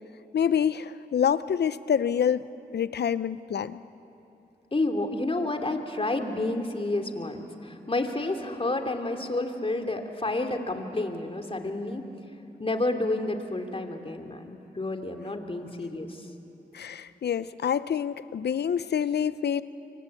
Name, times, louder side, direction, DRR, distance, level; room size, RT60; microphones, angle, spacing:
voice 1, 0.3-2.4 2.7-3.8 16.7-19.6, left 8 dB, 70° left, 15 dB, 0.7 m, -26 dB
voice 2, 4.7-12.0 12.6-16.2, left 2 dB, 30° left, 5 dB, 2.8 m, -30 dB
25.5 x 25.0 x 8.5 m, 2.9 s
cardioid pair, 55°, 18 cm